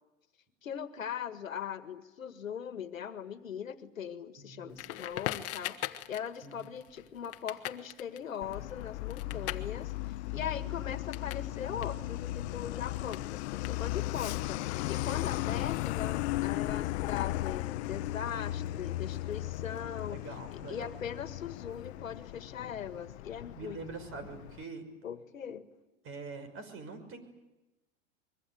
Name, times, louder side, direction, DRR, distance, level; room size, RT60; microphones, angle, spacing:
voice 1, 0.6-9.9 10.3-20.2 20.7-23.8 25.0-25.7, left 8 dB, 90° left, 10 dB, 1.9 m, -40 dB
voice 2, 4.4-4.9 6.4-6.7 9.3-9.7 10.3-10.8 20.1-20.9 23.5-24.9 26.0-27.4, right 4 dB, 35° right, 10 dB, 5.8 m, -45 dB
Crackle, 4.8-11.5 11.8-14.2, left 15 dB, 35° left, 1.5 m, -41 dB
Truck, 8.4-24.6, left 17 dB, 60° left, 0.9 m, -36 dB
24.5 x 23.0 x 9.5 m, 1.1 s
hypercardioid pair, 110°, 39 cm